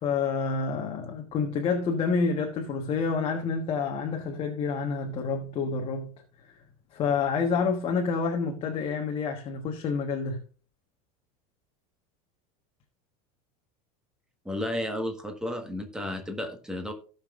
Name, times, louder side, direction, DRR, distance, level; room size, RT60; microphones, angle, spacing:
voice 1, 0.0-6.1 6.5-6.6 6.9-10.4, left 5 dB, 30° left, 1.3 m, -28 dB
voice 2, 14.4-16.9, left 1 dB, 5° right, 1.5 m, -32 dB
17.5 x 5.9 x 2.5 m
supercardioid pair, 150°, 19 cm